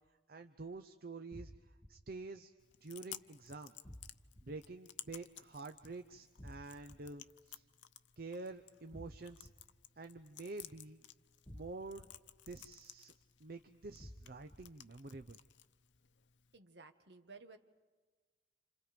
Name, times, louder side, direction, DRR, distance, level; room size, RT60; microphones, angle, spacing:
voice 1, 0.3-2.5 2.8-3.7 4.4-7.6 8.2-9.5 10.0-11.1 11.5-12.1 12.5-13.1 13.4-15.4, right 3 dB, 50° right, 8 dB, 0.7 m, -48 dB
sound 1, 1.3-1.9 3.8-4.4 6.4-7.0 8.9-9.5 11.5-12.0 14.0-14.6, equal, 15° left, 1.6 m, -51 dB
Chewing mastication, 2.6-16.6, left 12 dB, 80° left, 0.7 m, -56 dB
voice 2, 16.5-17.6, right 4 dB, 70° right, 7 dB, 1.6 m, -56 dB
29.0 x 27.5 x 5.2 m, 1.4 s
head